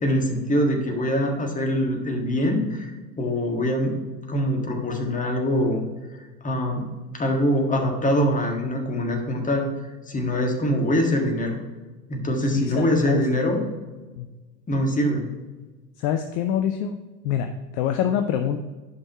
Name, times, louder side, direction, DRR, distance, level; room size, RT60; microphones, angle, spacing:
voice 1, 0.0-4.0 4.3-5.8 6.4-9.7 10.1-11.6 12.1-13.6 14.7-15.3, equal, 15° left, 1 dB, 1.7 m, -23 dB
voice 2, 12.5-13.2 14.2-14.3 16.0-17.0 17.2-18.6, left 9 dB, 45° left, 8 dB, 0.6 m, -25 dB
11.5 x 5.4 x 3.5 m, 1.2 s
figure-of-eight pair, 80°, 48 cm